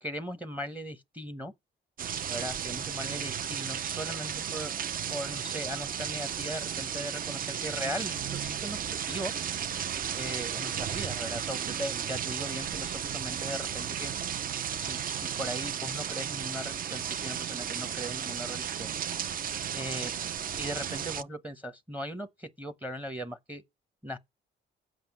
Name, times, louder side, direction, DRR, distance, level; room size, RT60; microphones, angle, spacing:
voice 1, 0.0-1.5 2.3-4.7 5.1-9.3 10.1-14.1 14.7-18.9 19.7-20.1 20.6-23.6 24.0-24.2, equal, 10° right, 0.8 m, -38 dB
sound 1, 2.0-21.2, right 8 dB, 45° right, 0.5 m, -34 dB
7.6 x 5.3 x 7.3 m
cardioid pair, 90°, 20 cm